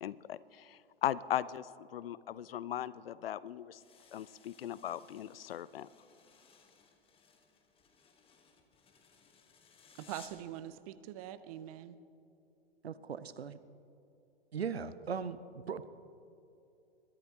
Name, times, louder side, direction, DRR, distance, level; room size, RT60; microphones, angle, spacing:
voice 1, 0.0-3.8 4.1-5.9, left 11 dB, 65° left, 19 dB, 0.5 m, -38 dB
sound 1, 3.7-10.5, left 6 dB, 15° left, 1.2 m, -61 dB
voice 2, 10.0-12.0, right 12 dB, 35° right, 14 dB, 0.6 m, -44 dB
voice 3, 12.8-13.6 14.5-15.4 15.7-15.9, right 6 dB, 80° right, 15 dB, 0.6 m, -38 dB
22.0 x 11.0 x 2.9 m, 2.7 s
figure-of-eight pair, 105°, 31 cm